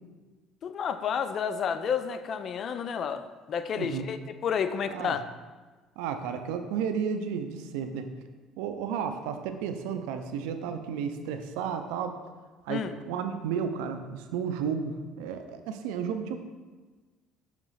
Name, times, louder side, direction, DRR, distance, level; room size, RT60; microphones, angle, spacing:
voice 1, 0.6-5.2 12.7-12.9, left 7 dB, 50° left, 10 dB, 0.4 m, -31 dB
voice 2, 6.0-8.1 8.6-12.2 12.7-16.4, right 7 dB, 85° right, 7 dB, 0.5 m, -32 dB
5.8 x 3.0 x 5.6 m, 1.3 s
supercardioid pair, 100°, 0 cm